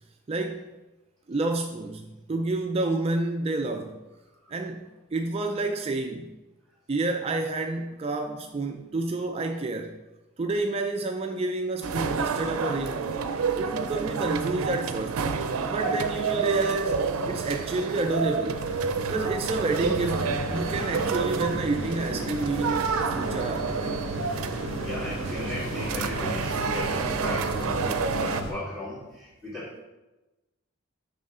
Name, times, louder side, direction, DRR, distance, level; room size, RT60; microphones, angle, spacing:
voice 1, 0.3-0.7 1.3-4.0 4.5-6.3 6.9-10.0 10.4-13.1 13.6-15.2 15.6-18.6 19.1-24.0, right 2 dB, 30° right, 0.3 m, -29 dB
sound 1, 11.8-28.4, right 5 dB, 90° right, 0.5 m, -29 dB
sound 2, 18.5-28.5, equal, 75° left, 1.4 m, -35 dB
voice 2, 24.8-29.8, left 1 dB, 10° left, 2.4 m, -37 dB
6.8 x 5.5 x 3.7 m
head